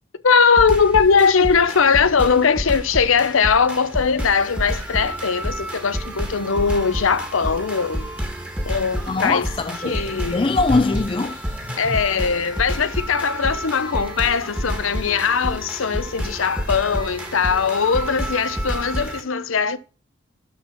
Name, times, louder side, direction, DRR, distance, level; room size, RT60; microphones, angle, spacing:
voice 1, 0.2-8.1 8.7-9.5 9.8-10.4 11.8-19.8, left 5 dB, 80° left, 0.7 m, -20 dB
sound 1, 0.6-19.2, equal, 5° right, 1.5 m, -29 dB
voice 2, 9.1-10.0 10.3-11.4 11.7-11.8, left 3 dB, 25° left, 0.4 m, -21 dB
11.5 x 4.3 x 5.9 m
head